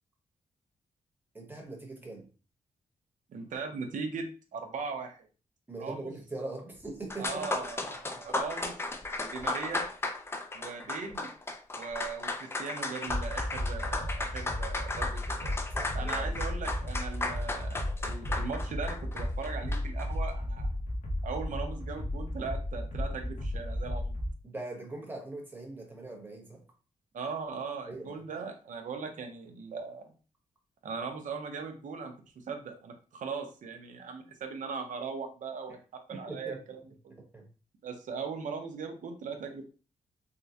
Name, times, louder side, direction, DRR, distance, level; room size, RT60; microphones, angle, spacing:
voice 1, 1.3-2.3 5.7-7.5 15.7-16.4 24.4-26.6 27.8-28.2 36.1-36.6 37.2-37.4, right 2 dB, 15° right, 0 dB, 1.0 m, -41 dB
voice 2, 3.3-5.2 5.8-6.1 7.2-9.9 10.5-11.3 11.7-15.5 15.9-20.7 21.2-24.2 27.1-30.0 30.8-37.2 37.8-39.7, right 5 dB, 75° right, 4 dB, 0.7 m, -39 dB
sound 1, 6.8-6.9 7.1-20.1, left 2 dB, 20° left, 0.4 m, -35 dB
sound 2, 13.1-24.3, left 1 dB, 60° left, 0.8 m, -34 dB
3.6 x 2.1 x 2.7 m, 0.36 s
wide cardioid pair, 105°, 13 cm